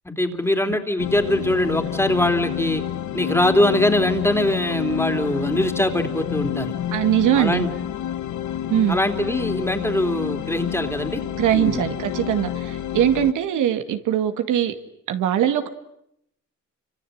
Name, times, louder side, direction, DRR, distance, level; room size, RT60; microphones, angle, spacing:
voice 1, 0.0-2.8 3.1-6.8 7.3-7.7 8.9-11.2 11.5-11.9, left 1 dB, 10° left, 6 dB, 3.2 m, -22 dB
sound 1, 1.0-13.3, left 11 dB, 70° left, 1.3 m, -29 dB
voice 2, 6.9-7.7 8.7-9.0 11.4-14.7 15.1-15.7, right 11 dB, 85° right, 7 dB, 2.2 m, -21 dB
28.5 x 25.5 x 8.0 m, 0.76 s
cardioid pair, 90°, 30 cm